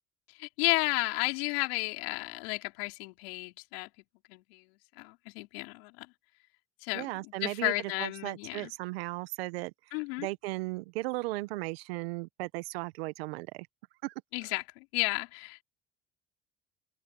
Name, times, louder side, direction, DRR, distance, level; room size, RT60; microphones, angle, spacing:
voice 1, 0.3-3.9 4.3-4.7 5.0-6.1 6.8-8.7 9.9-10.3 14.3-15.6, left 27 dB, 85° left, 3.8 m, -33 dB
voice 2, 6.9-7.7 8.0-13.7 14.0-14.1, right 21 dB, 85° right, 1.3 m, -36 dB
open air
hypercardioid pair, 70°, 29 cm